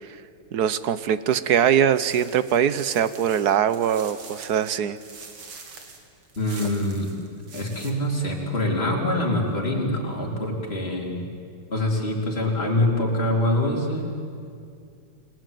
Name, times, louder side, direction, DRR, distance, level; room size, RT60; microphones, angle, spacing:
voice 1, 0.5-5.0, right 9 dB, 60° right, 14 dB, 1.1 m, -22 dB
sound 1, 2.1-7.9, right 4 dB, 85° right, 3.4 m, -44 dB
voice 2, 6.4-7.2 7.5-11.2 11.7-14.2, left 1 dB, 25° left, -1 dB, 4.4 m, -25 dB
29.5 x 20.5 x 9.2 m, 2.3 s
omnidirectional pair, 2.3 m